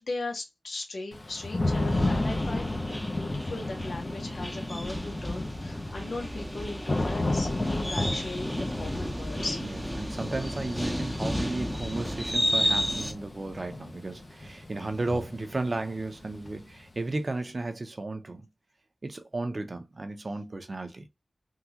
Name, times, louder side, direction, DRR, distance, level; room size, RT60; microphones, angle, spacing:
voice 1, 0.0-9.6, left 2 dB, 80° left, 0.9 m, -38 dB
Thunder / Rain, 1.1-16.9, left 2 dB, 40° left, 0.7 m, -33 dB
sound 1, 1.7-13.1, equal, 5° left, 0.7 m, -33 dB
voice 2, 9.6-18.5 19.0-21.1, right 2 dB, 45° right, 0.7 m, -34 dB
3.6 x 2.3 x 2.8 m
wide cardioid pair, 65°, 0 cm